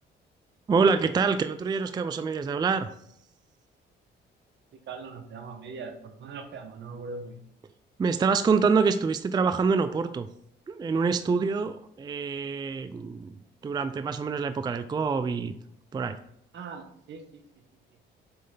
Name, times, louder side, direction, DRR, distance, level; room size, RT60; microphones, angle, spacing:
voice 1, 0.7-2.9 8.0-10.3 10.7-13.3 13.6-15.5 15.9-16.2, right 5 dB, 20° right, 11 dB, 0.3 m, -26 dB
voice 2, 4.7-7.3 16.5-17.6, right 4 dB, 65° right, 6 dB, 1.0 m, -41 dB
7.8 x 3.2 x 3.9 m, 0.72 s
cardioid pair, 90°, 20 cm